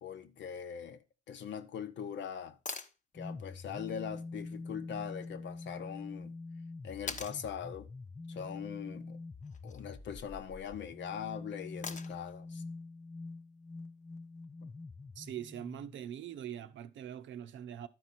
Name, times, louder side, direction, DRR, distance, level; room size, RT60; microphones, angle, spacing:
voice 1, 0.0-1.0 1.3-2.6 3.1-6.4 6.8-7.9 8.3-9.2 9.6-12.6 14.6-14.7, left 8 dB, 65° left, 1.0 m, -41 dB
sound 1, 2.7-3.0 5.2-5.3 7.1-7.4 9.4-9.8 11.8-12.3 14.4-14.5, left 5 dB, 40° left, 0.9 m, -41 dB
sound 2, 3.1-16.0, left 3 dB, 15° left, 0.5 m, -45 dB
voice 2, 15.1-17.9, right 10 dB, 75° right, 0.7 m, -43 dB
12.0 x 4.6 x 4.1 m
cardioid pair, 90°, 20 cm